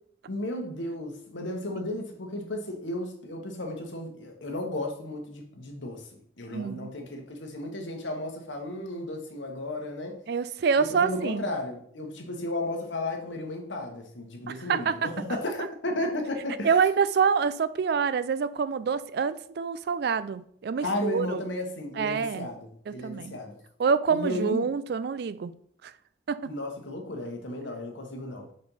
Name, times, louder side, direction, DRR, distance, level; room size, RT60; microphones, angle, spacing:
voice 1, 0.3-10.2 10.8-16.8 20.8-23.6 24.1-24.7 26.4-28.5, left 1 dB, 75° left, 1.2 m, -34 dB
voice 2, 6.5-6.9 10.3-11.4 14.5-15.1 16.6-21.4 22.0-22.5 22.9-23.3 23.8-25.5 25.8-25.9 26.3-26.5, right 6 dB, 55° right, 0.3 m, -26 dB
4.3 x 4.3 x 5.5 m
head